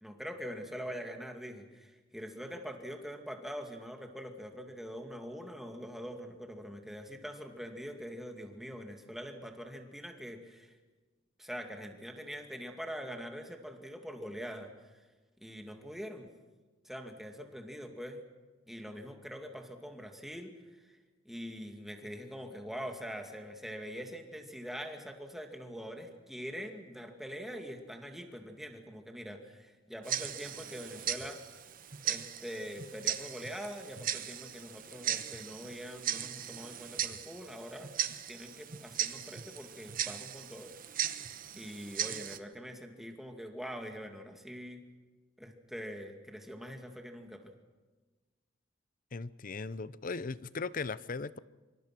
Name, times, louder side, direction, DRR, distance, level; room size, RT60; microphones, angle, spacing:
voice 1, 0.0-10.8 11.4-15.0 15.4-16.3 16.8-18.2 18.7-20.6 20.8-21.0 21.2-31.4 32.0-37.9 38.3-40.7 41.6-44.8 45.4-47.5, equal, ahead, 4 dB, 2.3 m, -44 dB
Tick-tock, 30.0-42.4, right 10 dB, 50° right, 1.1 m, -38 dB
voice 2, 49.1-51.4, left 4 dB, 45° left, 17 dB, 0.6 m, -38 dB
25.5 x 25.0 x 6.1 m, 1.3 s
head